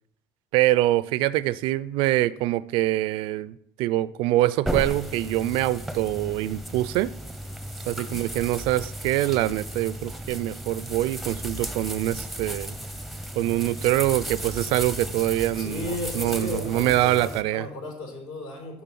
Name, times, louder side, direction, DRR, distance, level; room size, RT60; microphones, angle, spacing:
voice 1, 0.5-7.1 7.9-12.8 13.4-17.7, right 16 dB, 75° right, 0.4 m, -24 dB
sound 1, 4.6-17.4, right 1 dB, ahead, 0.7 m, -35 dB
voice 2, 15.5-18.8, left 2 dB, 70° left, 4.1 m, -35 dB
7.0 x 6.2 x 7.6 m
cardioid pair, 120°, 9 cm